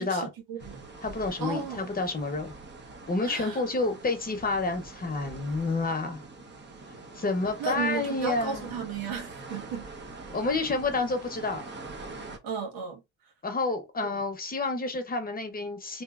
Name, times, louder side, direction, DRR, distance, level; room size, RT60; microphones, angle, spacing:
voice 1, 0.0-0.8 1.4-1.9 3.2-3.7 7.6-9.9 12.4-13.3 14.1-14.2, right 6 dB, 75° right, 1.4 m, -35 dB
sound 1, 0.6-12.4, right 3 dB, 30° right, 1.0 m, -44 dB
voice 2, 1.0-2.5 3.1-6.2 7.1-8.7 10.3-11.6 13.4-16.0, left 3 dB, 25° left, 1.0 m, -29 dB
3.4 x 2.6 x 2.5 m
supercardioid pair, 85°, 35 cm